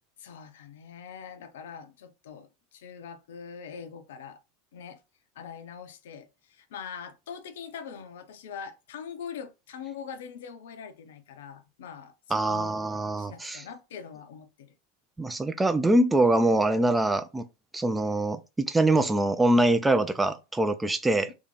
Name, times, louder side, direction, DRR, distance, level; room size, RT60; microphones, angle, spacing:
voice 1, 0.2-4.4 4.7-5.0 5.4-12.1 12.5-12.8 13.2-14.7 21.1-21.3, left 7 dB, 65° left, 0.5 m, -43 dB
voice 2, 12.3-13.6 15.2-17.5 17.7-21.3, right 2 dB, 10° right, 0.3 m, -24 dB
2.6 x 2.4 x 4.1 m
figure-of-eight pair, 85°, 0 cm